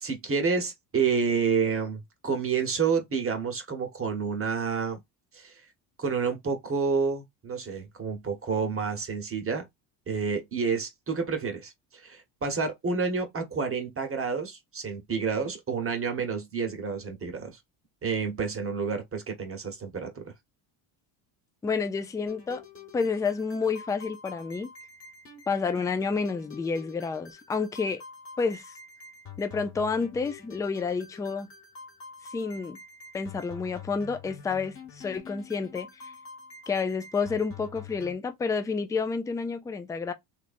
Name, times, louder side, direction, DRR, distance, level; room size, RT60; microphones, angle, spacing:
voice 1, 0.0-5.0 5.3-5.6 6.0-9.6 10.1-11.7 12.0-17.6 18.0-20.2, right 5 dB, 30° right, 1.1 m, -29 dB
voice 2, 21.6-22.6 22.9-24.7 25.5-28.0 28.4-28.7 29.4-31.5 32.3-32.8 33.1-36.1 36.7-40.1, left 5 dB, 10° left, 0.3 m, -29 dB
sound 1, 22.3-38.1, left 5 dB, 30° left, 1.4 m, -47 dB
3.1 x 2.5 x 2.5 m
supercardioid pair, 95°, 46 cm